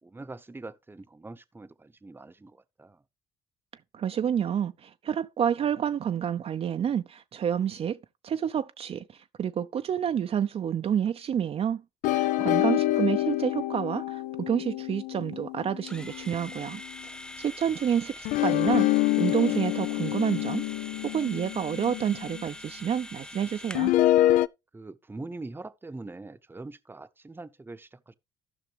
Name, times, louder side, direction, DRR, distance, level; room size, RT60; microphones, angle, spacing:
voice 1, 0.0-3.0 12.2-12.7 24.7-28.1, right 2 dB, 15° right, 0.8 m, -43 dB
voice 2, 3.9-8.0 8.2-11.8 12.1-16.8 17.4-20.6 21.0-23.9, right 8 dB, 45° right, 0.5 m, -29 dB
sound 1, 12.0-16.6 18.2-22.4 23.7-24.5, left 15 dB, 75° left, 0.4 m, -26 dB
sound 2, 15.9-24.0, left 2 dB, 5° left, 0.4 m, -44 dB
14.0 x 5.8 x 3.3 m
supercardioid pair, 60°, 14 cm